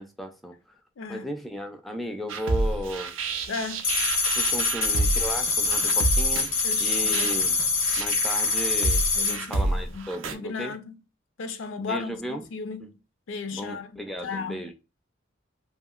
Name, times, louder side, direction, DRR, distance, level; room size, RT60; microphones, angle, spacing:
voice 1, 0.0-0.8 1.1-3.1 4.3-6.5 6.8-7.6 8.0-10.7 11.9-12.5 13.5-14.7, equal, ahead, 0.4 m, -35 dB
sound 1, 2.3-10.3, right 2 dB, 75° right, 0.4 m, -30 dB
voice 2, 3.5-3.9 6.6-7.3 9.2-9.6 9.9-11.0 11.4-12.9 13.3-14.0 14.2-14.6, left 4 dB, 70° left, 0.4 m, -35 dB
sound 2, 3.8-9.4, left 4 dB, 90° left, 0.8 m, -24 dB
2.8 x 2.6 x 2.3 m
head